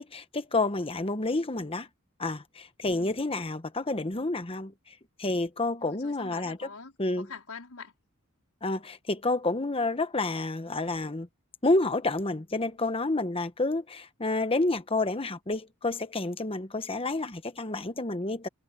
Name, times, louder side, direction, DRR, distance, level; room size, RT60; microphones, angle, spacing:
voice 1, 0.0-1.9 2.2-4.7 5.2-6.6 7.0-7.3 8.6-11.3 11.6-18.5, left 2 dB, 25° left, 1.1 m, -29 dB
voice 2, 2.9-3.2 5.9-7.9, left 4 dB, 80° left, 4.5 m, -45 dB
head